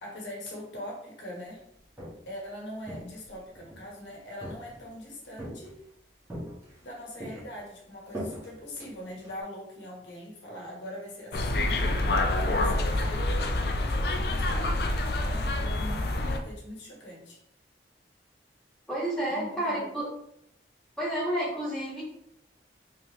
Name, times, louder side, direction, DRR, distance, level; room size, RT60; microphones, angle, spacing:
voice 1, 0.0-1.6 2.3-5.8 6.8-13.5 13.8-14.8 15.2-17.4 19.3-20.0, equal, 80° left, -2 dB, 1.1 m, -42 dB
Walk footsteps, 1.7-2.4 2.8-3.9 4.4-5.0 5.4-5.9 6.3-6.9 7.2-9.4, equal, 15° right, 1.1 m, -41 dB
sound 1, 11.3-16.4, left 2 dB, 60° left, 0.4 m, -27 dB
voice 2, 18.9-20.1 21.0-22.0, right 1 dB, 5° left, -8 dB, 1.3 m, -30 dB
3.4 x 3.0 x 3.0 m, 0.72 s
head